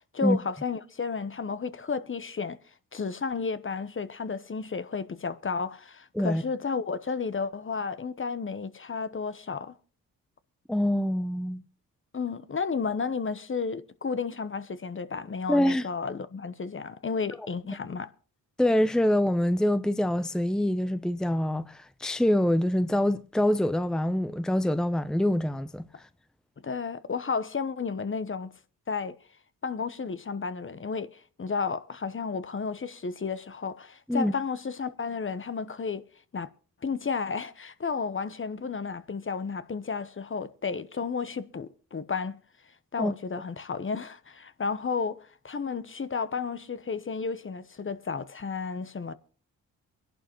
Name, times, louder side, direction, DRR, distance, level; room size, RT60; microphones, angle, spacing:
voice 1, 0.1-2.6 2.9-9.7 12.1-18.1 26.6-28.5 28.9-29.2 29.6-36.0 36.3-36.5 36.8-42.4 42.9-45.2 45.4-49.1, left 5 dB, 35° left, 1.0 m, -32 dB
voice 2, 10.7-11.6 15.5-15.9 18.6-25.9 34.1-34.3 43.0-43.1, left 1 dB, ahead, 0.8 m, -25 dB
23.0 x 11.0 x 3.1 m
supercardioid pair, 55°, 36 cm